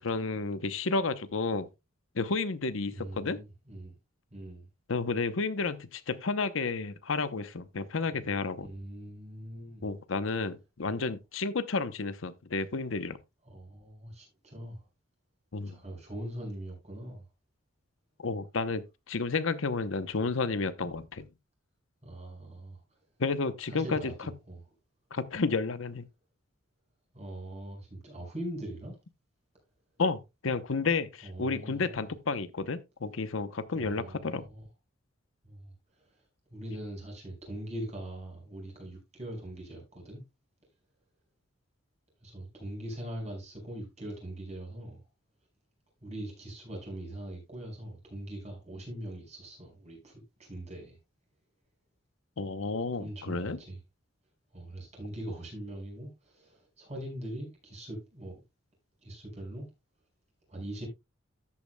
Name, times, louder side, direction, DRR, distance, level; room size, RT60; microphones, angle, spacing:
voice 1, 0.0-1.7 2.1-3.4 4.9-8.7 9.8-13.2 15.5-15.8 18.2-21.3 23.2-24.1 25.1-26.1 30.0-34.4 52.4-53.6, left 4 dB, 70° left, 0.8 m, -31 dB
voice 2, 2.8-3.9 4.3-4.7 8.1-8.3 8.6-9.8 13.5-14.8 15.6-17.2 22.0-22.8 23.7-24.6 27.1-29.0 31.2-32.1 33.7-34.7 35.4-35.7 36.5-40.2 42.2-45.0 46.0-51.0 53.0-53.8 54.5-58.4 59.0-59.7 60.5-60.9, right 1 dB, 35° right, 5.5 m, -42 dB
13.0 x 8.6 x 2.2 m
head